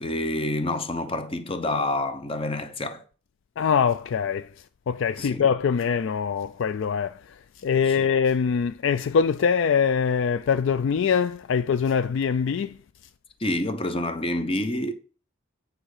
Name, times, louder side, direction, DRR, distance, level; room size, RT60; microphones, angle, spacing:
voice 1, 0.0-3.0 5.2-5.5 7.8-8.1 13.4-14.9, left 1 dB, 25° left, 0.8 m, -28 dB
voice 2, 3.6-4.5 4.9-7.2 7.6-12.7, left 6 dB, 65° left, 0.3 m, -23 dB
8.8 x 4.7 x 4.9 m
head